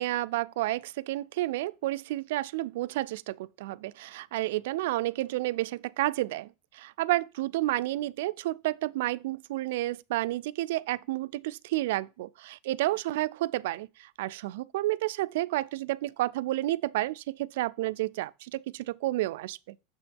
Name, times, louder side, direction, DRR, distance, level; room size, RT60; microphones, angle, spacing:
voice 1, 0.0-19.8, right 17 dB, 75° right, 0.3 m, -31 dB
6.9 x 5.9 x 3.5 m
supercardioid pair, 110°, 0 cm